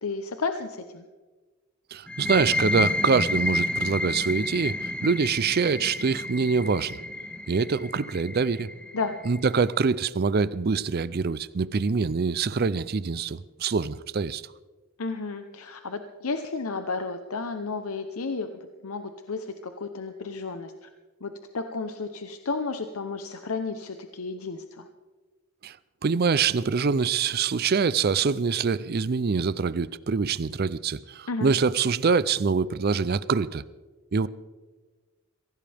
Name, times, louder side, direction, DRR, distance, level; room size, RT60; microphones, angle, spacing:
voice 1, 0.0-1.0 8.9-9.2 15.0-18.5 18.8-20.9 21.2-24.9 31.3-31.5, left 4 dB, 90° left, 0.9 m, -32 dB
voice 2, 1.9-7.0 7.5-8.7 9.2-14.4 25.6-25.8 26.0-33.6 34.1-34.3, right 5 dB, 45° right, 0.5 m, -25 dB
sound 1, 2.1-9.5, left 1 dB, 5° left, 0.6 m, -30 dB
23.0 x 16.5 x 3.5 m
head